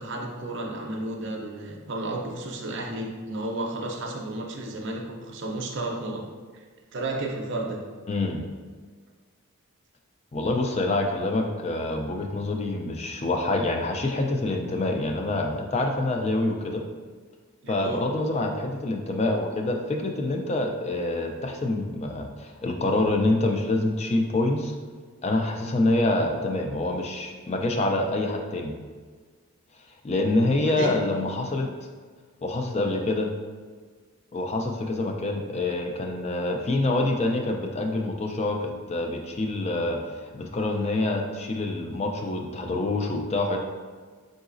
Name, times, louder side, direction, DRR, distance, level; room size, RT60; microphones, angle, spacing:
voice 1, 0.0-6.2 6.9-7.8 17.6-18.0 30.6-30.9, right 2 dB, 50° right, 0 dB, 0.5 m, -32 dB
voice 2, 8.1-8.4 10.3-16.8 17.7-24.7 25.2-28.7 30.0-31.7 32.4-33.3 34.3-43.6, left 2 dB, 30° left, 3 dB, 0.3 m, -26 dB
3.9 x 3.8 x 2.5 m, 1.5 s
head